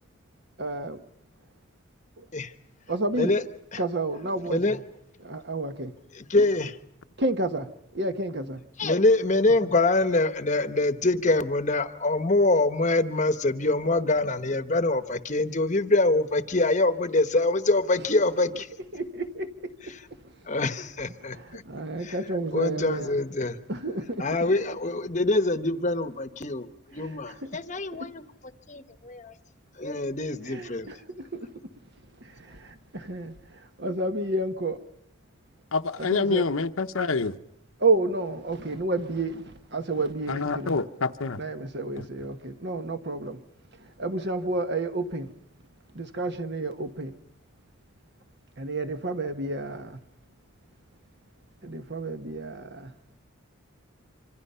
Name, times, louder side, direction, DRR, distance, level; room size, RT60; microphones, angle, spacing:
voice 1, 0.6-1.0 2.2-2.3 2.9-3.3 3.8-4.8 5.2-5.9 7.2-8.6 9.6-9.7 18.9-20.3 21.2-23.2 23.7-24.3 26.9-27.6 27.9-28.1 30.5-31.5 32.2-34.8 36.0-36.5 37.8-39.4 39.7-40.8 41.4-43.4 43.7-45.3 46.0-47.2 48.6-50.0 51.6-52.9, right 2 dB, 55° right, 8 dB, 1.4 m, -31 dB
voice 2, 4.5-4.8 6.1-6.8 8.8-18.7 20.5-21.6 22.0-22.1 22.5-23.6 24.2-28.2 28.7-29.3 29.8-30.9, left 2 dB, 35° left, 10 dB, 1.0 m, -24 dB
voice 3, 35.7-37.3 40.3-41.4 42.0-42.1, left 4 dB, 75° left, 9 dB, 0.9 m, -27 dB
26.0 x 26.0 x 5.7 m, 0.73 s
head